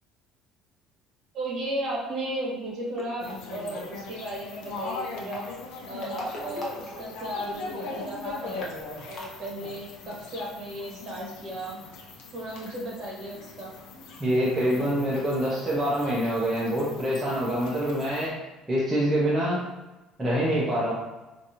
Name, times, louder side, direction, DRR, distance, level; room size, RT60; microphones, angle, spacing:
voice 1, 1.3-5.4 5.9-8.7 9.1-11.7 12.3-13.7, right 1 dB, 35° right, -4 dB, 1.3 m, -35 dB
sound 1, 2.9-3.3 5.1-7.6 7.9-8.0 8.2-8.3 8.5-9.5, left 1 dB, 30° left, 0.7 m, -39 dB
sound 2, 3.2-18.3, left 3 dB, 75° left, 0.6 m, -40 dB
voice 2, 14.2-18.3 18.7-19.6 20.2-20.9, equal, 10° right, -7 dB, 0.5 m, -25 dB
4.5 x 2.5 x 2.8 m, 1.1 s
cardioid pair, 170°, 0 cm